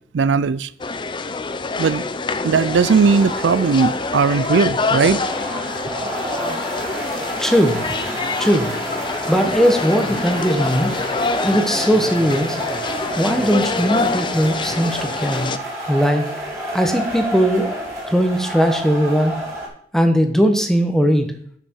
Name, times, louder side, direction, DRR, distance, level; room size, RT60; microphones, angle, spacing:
voice 1, 0.1-0.7 1.8-2.0 2.4-5.2, right 5 dB, 90° right, 0.4 m, -17 dB
sound 1, 0.8-15.6, left 3 dB, 25° left, 0.5 m, -26 dB
sound 2, 2.9-19.7, right 1 dB, 15° right, 3.6 m, -30 dB
voice 2, 7.4-7.8 8.4-8.7 9.3-10.9 11.4-12.6 13.2-15.5 15.9-16.2 16.7-19.3 19.9-21.3, equal, 5° left, 1.1 m, -18 dB
12.5 x 6.0 x 4.6 m
head